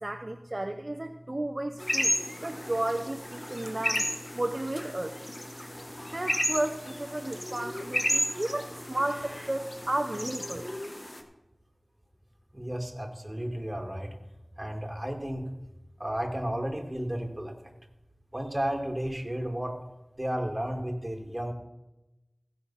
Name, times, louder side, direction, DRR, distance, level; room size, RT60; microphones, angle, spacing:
voice 1, 0.0-4.1 4.4-5.2 5.7-10.7, right 1 dB, 40° right, 5 dB, 0.6 m, -33 dB
sound 1, 1.8-11.2, left 1 dB, 35° left, 1.4 m, -33 dB
voice 2, 12.5-14.1 14.6-15.5 16.0-17.5 18.3-19.8 20.2-21.5, right 1 dB, 20° right, 1 dB, 2.2 m, -33 dB
15.5 x 5.7 x 5.6 m, 0.96 s
wide cardioid pair, 45°, 0 cm